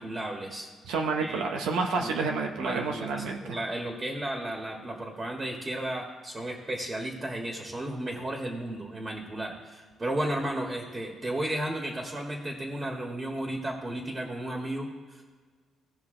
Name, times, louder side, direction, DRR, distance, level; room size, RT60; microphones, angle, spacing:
voice 1, 0.0-0.7 1.2-1.5 2.0-2.2 2.6-15.2, right 1 dB, 25° right, 1 dB, 1.8 m, -34 dB
voice 2, 0.9-3.6, right 4 dB, 90° right, 2 dB, 1.1 m, -29 dB
17.0 x 5.9 x 3.9 m, 1.5 s
cardioid pair, 90°, 0 cm